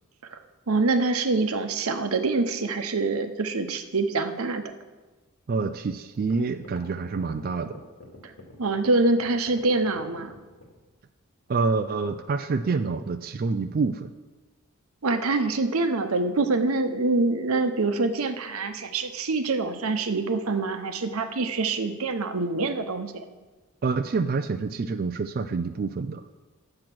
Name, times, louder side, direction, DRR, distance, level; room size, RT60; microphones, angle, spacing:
voice 1, 0.7-4.6 8.2-8.3 8.6-10.3 15.0-23.2, right 3 dB, 90° right, 8 dB, 0.8 m, -25 dB
voice 2, 5.5-7.8 11.5-14.1 23.8-26.2, right 4 dB, 45° right, 8 dB, 0.4 m, -27 dB
sound 1, 6.1-10.8, left 2 dB, 80° left, 2.2 m, -46 dB
8.8 x 7.7 x 6.0 m, 1.3 s
head